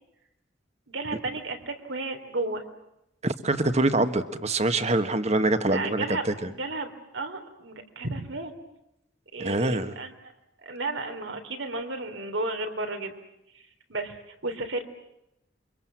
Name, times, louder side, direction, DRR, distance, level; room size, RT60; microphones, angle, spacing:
voice 1, 0.9-2.6 5.7-6.2 6.5-8.5 9.3-10.1 10.6-13.2 13.5-13.6 13.9-14.1 14.4-14.8, right 2 dB, 85° right, 5 dB, 3.6 m, -33 dB
voice 2, 3.2-6.5 9.4-9.9, right 2 dB, 35° right, 9 dB, 1.5 m, -25 dB
28.5 x 25.0 x 7.6 m, 0.86 s
head